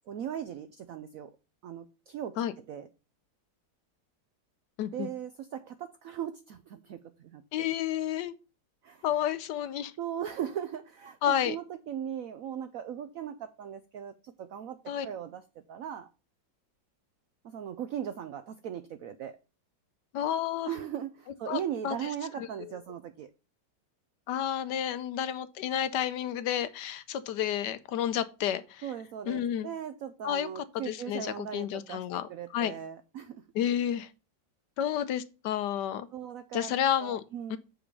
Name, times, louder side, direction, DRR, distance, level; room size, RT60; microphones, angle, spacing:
voice 1, 0.1-1.4 1.6-2.9 4.9-7.4 8.8-9.0 10.0-14.8 15.0-16.1 17.4-19.4 20.6-23.3 28.8-33.4 34.8-34.9 36.1-36.7 37.0-37.6, right 9 dB, 75° right, 0.7 m, -38 dB
voice 2, 7.5-8.3 9.0-9.9 11.2-11.6 14.9-15.1 20.1-20.7 21.5-22.0 22.4-22.5 24.3-28.8 29.3-29.7 30.2-32.7 33.5-34.1 34.8-36.1 36.5-37.2 37.5-37.6, left 10 dB, 75° left, 1.2 m, -31 dB
7.7 x 3.9 x 6.7 m
omnidirectional pair, 2.0 m